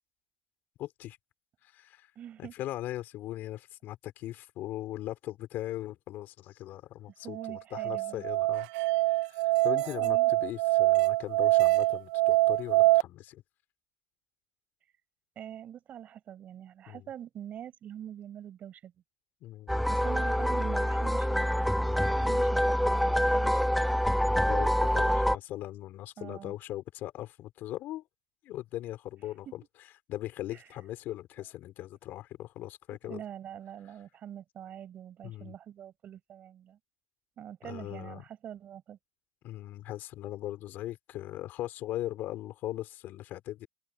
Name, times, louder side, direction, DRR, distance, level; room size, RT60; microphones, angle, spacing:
voice 1, 0.8-1.2 1.6-2.1 2.4-8.7 9.1-13.4 16.9-17.1 19.4-19.7 24.5-28.0 28.4-29.6 30.1-33.2 35.2-35.5 37.6-38.2 39.4-43.7, left 14 dB, 45° left, 4.5 m, -39 dB
voice 2, 2.2-2.5 7.2-8.2 9.7-10.3 15.4-18.9 19.9-24.0 24.9-25.4 26.2-26.5 29.5-29.6 30.5-30.7 31.4-31.5 33.0-36.8 37.4-39.0, right 10 dB, 35° right, 5.7 m, -44 dB
Musical instrument, 7.3-13.0, right 19 dB, 75° right, 0.9 m, -25 dB
sound 1, 19.7-25.4, equal, ahead, 0.4 m, -26 dB
open air
cardioid pair, 150°, 4 cm